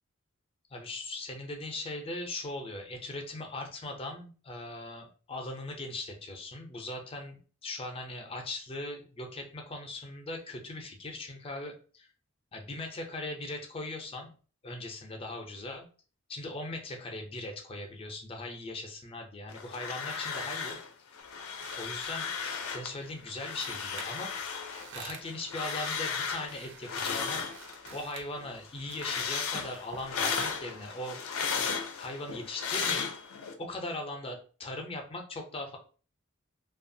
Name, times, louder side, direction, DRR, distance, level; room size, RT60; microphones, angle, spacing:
voice 1, 0.7-12.1 12.5-14.3 14.6-15.9 16.3-20.8 21.8-22.3 22.7-24.3 24.9-27.5 27.9-31.2 32.0-33.1 33.6-35.8, left 2 dB, 25° left, 3 dB, 0.5 m, -39 dB
sound 1, 19.5-20.9 21.1-22.9 23.3-28.0 28.4-33.5, left 6 dB, 80° left, 0.5 m, -35 dB
sound 2, 21.2-30.9, right 5 dB, 55° right, 0.4 m, -52 dB
2.8 x 2.3 x 2.6 m, 0.38 s
head